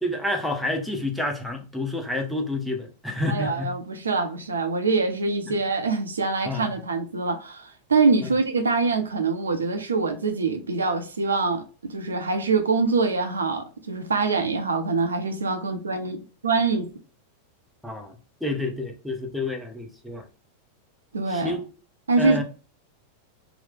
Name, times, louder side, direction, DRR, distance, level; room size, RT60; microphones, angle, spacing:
voice 1, 0.0-3.7 5.5-5.6 6.4-6.8 8.2-8.3 17.8-20.2 21.3-21.6 22.2-22.4, left 1 dB, ahead, 0.7 m, -29 dB
voice 2, 3.3-11.6 11.9-16.2 16.4-16.9 21.1-21.6 22.1-22.4, right 4 dB, 70° right, 0.5 m, -24 dB
2.9 x 2.1 x 3.4 m
figure-of-eight pair, 90°, 0 cm